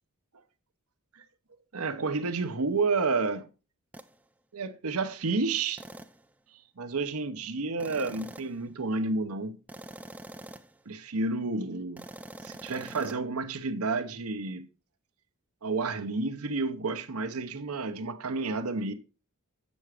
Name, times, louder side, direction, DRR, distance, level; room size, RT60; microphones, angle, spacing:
voice 1, 1.7-3.5 4.5-5.8 6.8-9.6 10.9-12.0 12.4-14.6 15.6-18.9, right 3 dB, 75° right, 0.8 m, -30 dB
sound 1, 3.9-4.2 5.8-6.3 7.8-8.6 9.7-10.8 12.0-13.2, right 1 dB, 5° right, 0.4 m, -45 dB
7.7 x 6.2 x 4.8 m
head